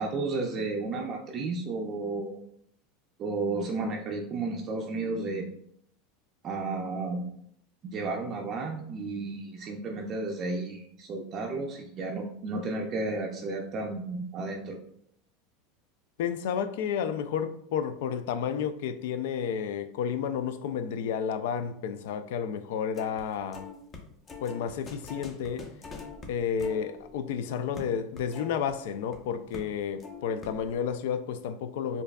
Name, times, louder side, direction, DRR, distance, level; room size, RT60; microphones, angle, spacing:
voice 1, 0.0-2.4 3.2-5.5 6.4-7.2 7.8-14.8, right 3 dB, 35° right, 0.4 m, -33 dB
voice 2, 16.2-23.7 24.4-25.7 26.3-32.0, left 7 dB, 75° left, 0.3 m, -31 dB
sound 1, 22.9-23.2 23.5-29.2 29.5-29.7 30.0-30.8, left 4 dB, 30° left, 0.6 m, -45 dB
4.5 x 2.6 x 2.3 m
supercardioid pair, 130°, 0 cm